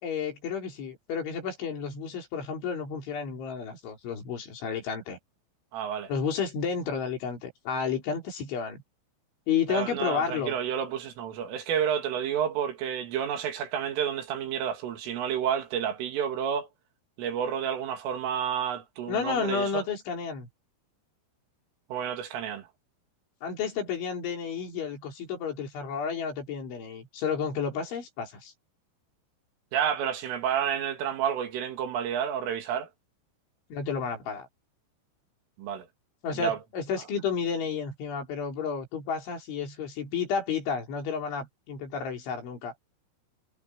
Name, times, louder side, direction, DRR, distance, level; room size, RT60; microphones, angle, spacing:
voice 1, 0.0-5.2 6.1-8.8 9.5-10.6 19.1-20.5 23.4-28.5 33.7-34.5 36.2-42.7, left 6 dB, 65° left, 6.7 m, -31 dB
voice 2, 5.7-6.1 9.7-16.7 17.2-19.8 21.9-22.7 29.7-32.9 35.6-35.9 36.3-36.6, right 8 dB, 75° right, 5.2 m, -30 dB
omnidirectional pair, 5.8 m